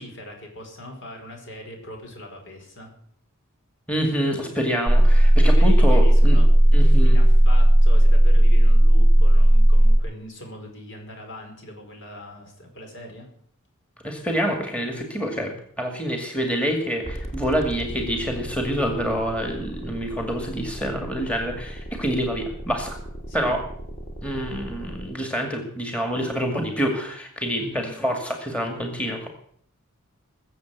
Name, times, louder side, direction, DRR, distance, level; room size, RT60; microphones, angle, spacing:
voice 1, 0.0-2.9 5.4-13.3 23.3-23.5 27.6-28.0, left 1 dB, 60° left, 3 dB, 5.1 m, -40 dB
voice 2, 3.9-6.4 6.7-7.2 14.0-23.0 23.3-23.6 24.2-29.3, equal, 5° left, 3 dB, 2.2 m, -27 dB
sound 1, 4.9-10.0, right 1 dB, 15° right, 0.7 m, -14 dB
sound 2, 17.0-25.0, equal, 30° left, 2.5 m, -37 dB
21.0 x 7.6 x 8.2 m, 0.63 s
head